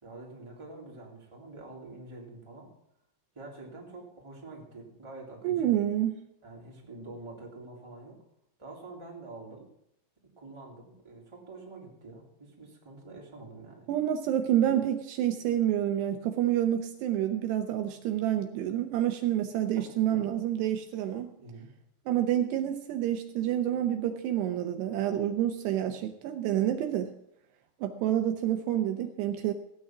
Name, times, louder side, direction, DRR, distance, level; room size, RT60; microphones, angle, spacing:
voice 1, 0.0-2.7 3.3-5.8 6.4-8.2 8.6-9.7 10.4-13.9 20.1-20.3 21.4-21.7, right 2 dB, 10° right, -3 dB, 2.5 m, -46 dB
voice 2, 5.4-6.2 13.9-21.3 22.1-27.1 27.8-29.5, right 11 dB, 75° right, 6 dB, 2.8 m, -28 dB
16.0 x 9.2 x 6.0 m, 0.78 s
omnidirectional pair, 5.2 m